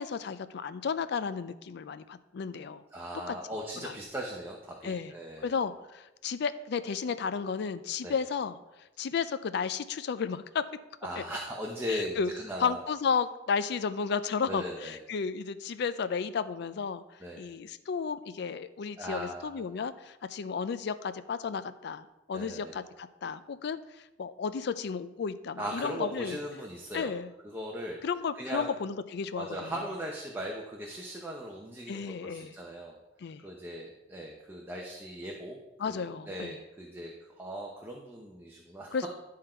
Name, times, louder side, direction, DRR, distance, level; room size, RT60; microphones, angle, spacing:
voice 1, 0.0-2.8 3.3-3.4 3.8-4.0 4.8-5.1 5.4-8.6 9.0-10.6 11.2-11.3 11.9-12.3 12.6-17.0 17.4-26.4 26.9-27.3 28.0-29.7 31.9-32.5 33.2-33.4 35.8-36.6 38.9-39.1, left 6 dB, 60° left, 13 dB, 0.4 m, -33 dB
voice 2, 2.9-5.5 8.0-8.2 11.0-12.8 14.5-15.0 17.2-17.5 19.0-19.7 22.3-22.8 25.6-27.1 27.4-28.0 28.3-28.7 29.4-33.0 33.4-35.6 35.8-39.0, equal, 10° right, -1 dB, 0.8 m, -39 dB
11.0 x 3.8 x 4.4 m, 0.98 s
head